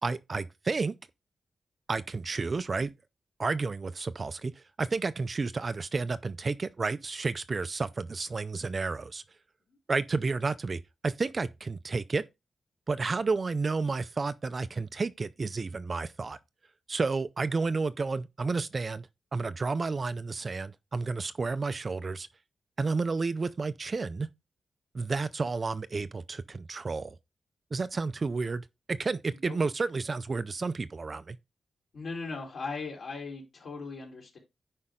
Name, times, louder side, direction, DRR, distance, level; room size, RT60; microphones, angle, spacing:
voice 1, 0.0-0.9 1.9-2.9 3.4-9.2 9.9-12.2 12.9-16.4 16.9-22.3 22.8-24.3 24.9-27.2 27.7-31.4, right 4 dB, 35° right, 0.4 m, -31 dB
voice 2, 31.9-34.4, left 4 dB, 55° left, 3.8 m, -38 dB
9.9 x 5.3 x 3.7 m
wide cardioid pair, 160°, 0 cm